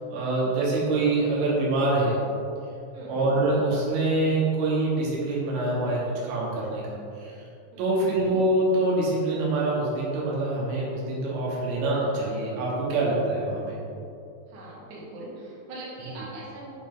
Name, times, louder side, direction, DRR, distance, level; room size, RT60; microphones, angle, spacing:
voice 1, 0.1-2.2 3.1-7.4 7.8-13.8, right 2 dB, 90° right, -5 dB, 3.9 m, -25 dB
voice 2, 7.7-8.1 14.5-16.7, right 2 dB, 70° right, -7 dB, 3.6 m, -41 dB
8.6 x 5.4 x 3.8 m, 2.7 s
omnidirectional pair, 5.4 m